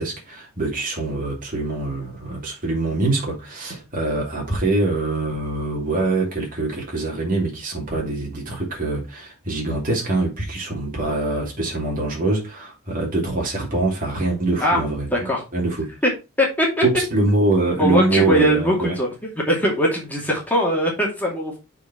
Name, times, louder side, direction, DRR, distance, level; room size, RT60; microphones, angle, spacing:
voice 1, 0.0-15.1 15.5-15.9 16.8-19.0, right 2 dB, 40° right, 2.7 m, -24 dB
voice 2, 15.1-15.4 16.0-16.1 16.4-16.8 17.8-19.1 19.5-21.6, equal, 10° left, 2.4 m, -20 dB
7.1 x 4.8 x 4.5 m
head